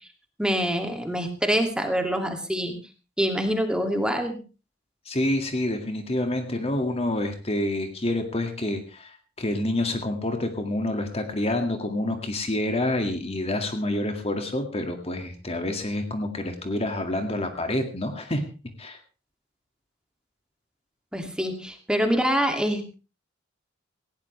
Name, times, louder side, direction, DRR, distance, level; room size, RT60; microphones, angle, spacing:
voice 1, 0.4-2.8 3.2-4.4 21.1-22.9, equal, 5° right, 4 dB, 2.4 m, -25 dB
voice 2, 5.1-18.5 18.8-19.0, left 1 dB, 30° left, 5 dB, 2.1 m, -28 dB
19.0 x 16.5 x 3.3 m, 0.33 s
head